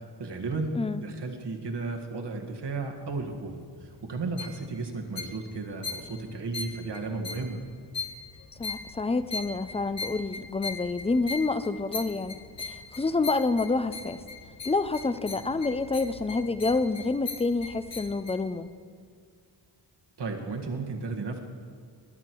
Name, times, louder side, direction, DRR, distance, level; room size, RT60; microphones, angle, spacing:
voice 1, 0.2-7.6 20.2-21.4, right 3 dB, 70° right, 3 dB, 1.8 m, -34 dB
sound 1, 2.9-18.4, left 4 dB, 75° left, 1.5 m, -40 dB
voice 2, 8.6-14.2 14.6-18.7, left 3 dB, 15° left, 13 dB, 0.5 m, -28 dB
20.5 x 10.5 x 4.6 m, 2.1 s
wide cardioid pair, 85°, 43 cm